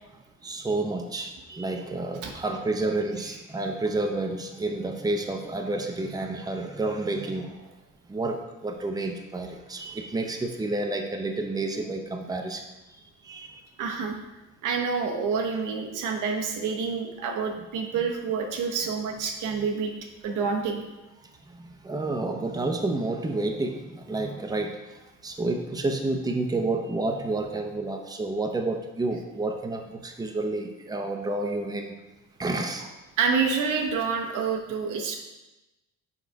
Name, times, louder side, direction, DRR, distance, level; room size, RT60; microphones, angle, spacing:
voice 1, 0.4-7.5 8.1-12.7 13.0-13.6 21.5-32.0 32.4-32.9, right 2 dB, 15° right, 4 dB, 0.7 m, -30 dB
voice 2, 13.8-14.2 14.6-19.9 20.2-20.8 33.2-35.2, right 5 dB, 90° right, 2 dB, 1.0 m, -28 dB
6.1 x 4.0 x 4.6 m, 1.0 s
cardioid pair, 90°, 30 cm